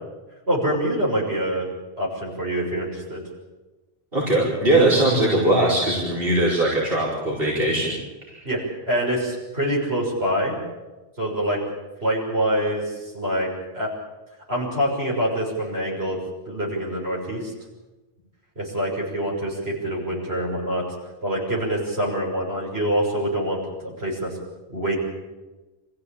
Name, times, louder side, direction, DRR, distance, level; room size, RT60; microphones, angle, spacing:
voice 1, 0.5-1.7 2.0-3.2 8.4-10.6 11.2-11.6 12.0-13.9 14.5-16.2 16.5-17.5 18.6-20.8 21.2-24.3 24.7-24.9, equal, 80° right, -3 dB, 6.8 m, -25 dB
voice 2, 4.1-7.9 8.3-8.4, right 1 dB, 65° right, -6 dB, 5.3 m, -20 dB
26.0 x 15.5 x 8.8 m, 1.2 s
omnidirectional pair, 1.1 m